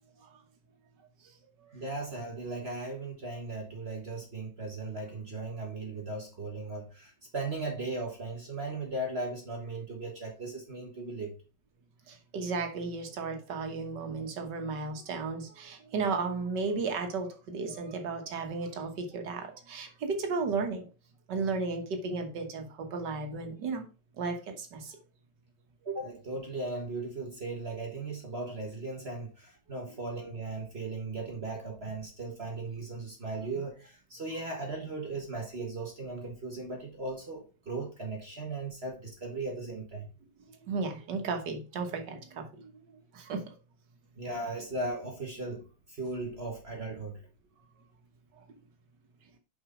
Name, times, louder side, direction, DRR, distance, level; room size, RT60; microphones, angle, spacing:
voice 1, 1.7-11.3 25.8-40.1 43.2-43.3 44.2-47.2, right 2 dB, 40° right, 1.6 m, -37 dB
voice 2, 12.1-20.8 21.3-23.9 24.2-25.0 40.6-42.7 43.1-43.5, right 4 dB, 90° right, 1.9 m, -34 dB
6.0 x 5.4 x 4.9 m
omnidirectional pair, 1.8 m